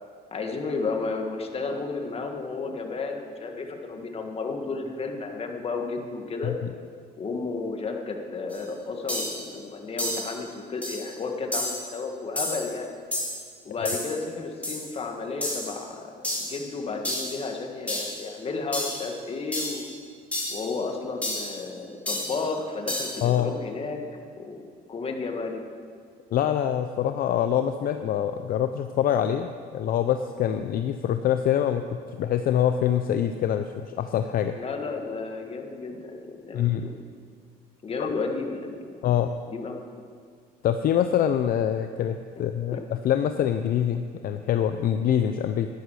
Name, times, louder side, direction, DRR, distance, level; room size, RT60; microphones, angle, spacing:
voice 1, 0.3-6.5 7.2-13.0 13.7-19.8 20.5-25.6 34.5-36.9 37.8-39.0 39.5-39.8 42.7-42.8, left 4 dB, 35° left, 3 dB, 1.7 m, -32 dB
sound 1, 8.5-8.6 9.1-9.4 10.0-10.3 10.8-11.1 11.5-11.9 12.4-12.7 13.1-13.4 13.9-14.2 14.6-14.9 15.4-15.7 16.2-16.6 17.1-17.4 17.9-18.2 18.7-19.1 19.5-19.9 20.3-20.7 21.2-21.6 22.1-22.4 22.9-23.2, left 1 dB, 10° left, 3.7 m, -30 dB
voice 2, 23.2-23.5 26.3-34.5 36.5-36.9 38.0-38.1 39.0-39.3 40.6-45.7, left 10 dB, 60° left, 8 dB, 0.6 m, -25 dB
11.5 x 11.0 x 6.4 m, 2.1 s
cardioid pair, 110°, 17 cm